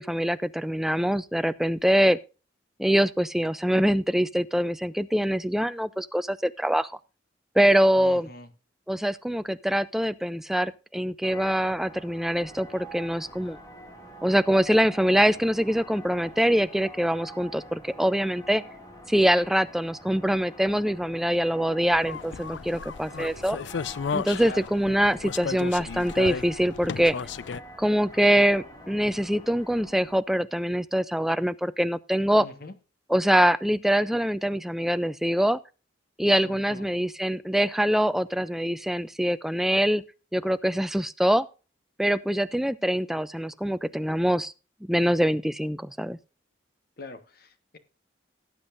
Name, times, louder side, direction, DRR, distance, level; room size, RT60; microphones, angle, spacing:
voice 1, 0.0-2.2 2.8-6.9 7.6-8.3 8.9-13.6 14.2-18.6 19.1-23.6 24.1-27.2 27.8-32.5 33.1-35.6 36.2-40.0 40.3-41.5 42.0-44.5 44.8-46.2, equal, ahead, 13 dB, 0.4 m, -24 dB
voice 2, 8.0-8.5 24.4-24.7 32.4-32.7 36.4-36.9 47.0-47.8, left 2 dB, 55° left, 9 dB, 1.3 m, -42 dB
sound 1, 11.2-30.1, equal, 20° left, 2.2 m, -46 dB
sound 2, 21.9-27.6, left 6 dB, 75° left, 0.4 m, -34 dB
18.0 x 8.1 x 2.6 m, 0.32 s
head